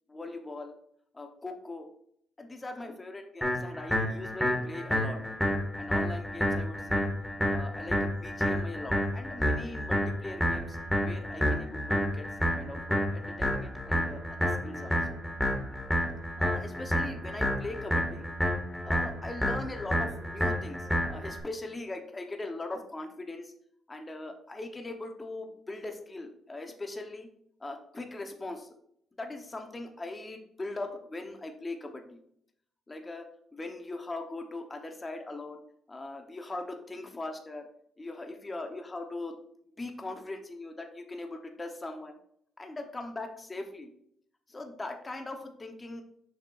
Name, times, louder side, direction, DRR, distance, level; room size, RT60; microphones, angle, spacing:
voice 1, 0.1-0.7 1.1-1.9 2.4-5.2 5.8-7.1 7.5-15.2 16.4-18.3 18.8-23.5 23.9-27.3 27.6-28.7 29.2-32.2 32.9-35.6 35.9-37.7 38.0-39.3 39.8-42.2 42.6-43.9 44.5-46.0, left 2 dB, 20° left, 4 dB, 1.0 m, -40 dB
sound 1, 3.4-21.4, equal, ahead, 1.9 m, -29 dB
7.2 x 5.9 x 2.5 m, 0.67 s
cardioid pair, 90°, 0 cm